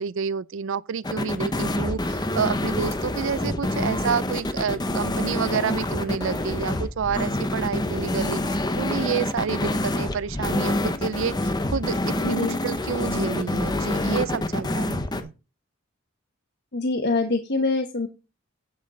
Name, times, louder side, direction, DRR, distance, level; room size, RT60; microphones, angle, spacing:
voice 1, 0.0-15.3, right 6 dB, 70° right, 0.4 m, -29 dB
sound 1, 1.0-15.2, left 1 dB, 20° left, 0.9 m, -26 dB
voice 2, 12.2-12.6 16.7-18.1, left 3 dB, 60° left, 1.1 m, -24 dB
8.8 x 8.3 x 4.1 m
head